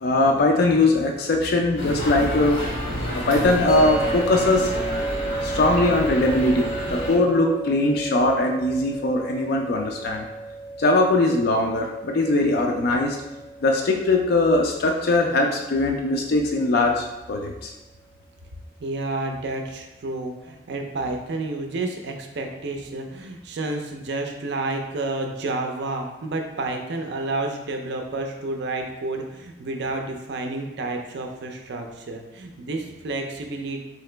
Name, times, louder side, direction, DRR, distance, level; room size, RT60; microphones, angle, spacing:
voice 1, 0.0-2.7 3.1-4.7 5.4-10.2 10.8-13.2 13.6-17.7, left 2 dB, 55° left, 1 dB, 0.4 m, -21 dB
sound 1, 1.8-7.2, equal, 85° left, 0.9 m, -29 dB
sound 2, 3.7-16.8, right 1 dB, 10° right, 0.7 m, -33 dB
voice 2, 18.8-33.8, right 2 dB, 65° right, 3 dB, 0.4 m, -30 dB
3.8 x 2.8 x 3.3 m, 1.0 s
head